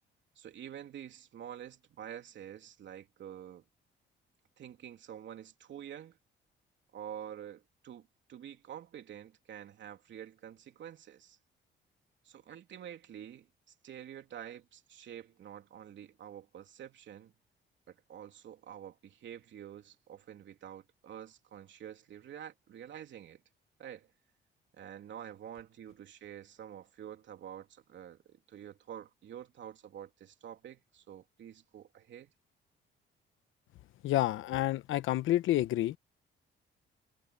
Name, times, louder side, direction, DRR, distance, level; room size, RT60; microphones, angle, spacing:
voice 1, 0.3-3.6 4.6-6.2 6.9-11.4 12.2-17.3 17.9-23.4 23.8-24.1 24.7-32.3, right 10 dB, 70° right, 3.2 m, -48 dB
voice 2, 34.0-36.0, left 14 dB, 85° left, 1.0 m, -29 dB
cardioid pair, 90°, 20 cm